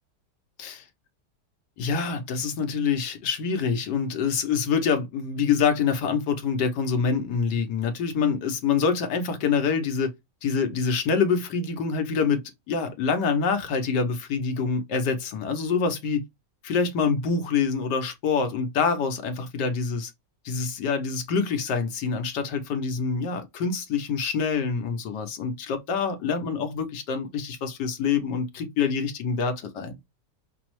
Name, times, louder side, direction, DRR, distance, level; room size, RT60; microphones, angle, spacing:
voice 1, 1.8-10.1 10.4-12.4 12.7-16.2 16.6-20.1 20.4-30.0, left 5 dB, 85° left, 1.4 m, -26 dB
5.5 x 2.0 x 3.0 m
omnidirectional pair, 1.8 m